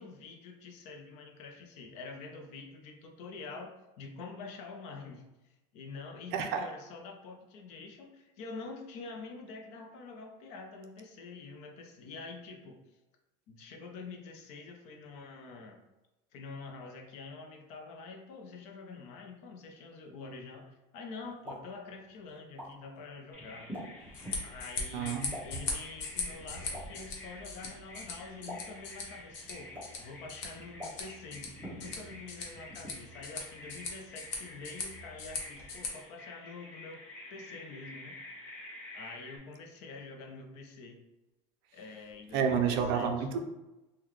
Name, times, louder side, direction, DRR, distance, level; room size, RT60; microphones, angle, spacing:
voice 1, 0.0-5.3 5.7-12.8 13.5-15.8 16.3-23.7 24.4-31.5 31.8-37.0 37.3-38.2 38.9-41.0 41.7-43.1, left 4 dB, 50° left, 2 dB, 0.6 m, -46 dB
voice 2, 6.3-6.7 24.9-25.4 42.3-43.4, right 6 dB, 60° right, 5 dB, 0.4 m, -29 dB
Explosion, 21.2-31.5, left 1 dB, 10° right, 1.1 m, -51 dB
Bird vocalization bird call bird song, 23.3-39.4, left 1 dB, 10° left, 1.3 m, -49 dB
sound 1, 24.0-35.9, left 4 dB, 85° left, 0.9 m, -41 dB
3.8 x 2.2 x 3.0 m, 1.0 s
cardioid pair, 170°, 15 cm